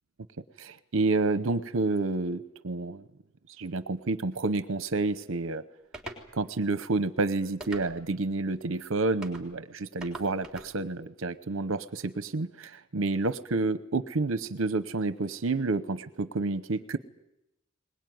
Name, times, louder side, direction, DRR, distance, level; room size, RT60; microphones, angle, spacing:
voice 1, 0.6-3.0 3.6-5.6 6.3-17.0, right 3 dB, 60° right, 13 dB, 0.8 m, -29 dB
sound 1, 5.9-6.2 7.6-8.2 9.2-9.5 10.0-10.7, right 2 dB, 5° right, 3.6 m, -42 dB
22.0 x 20.5 x 9.4 m, 0.85 s
head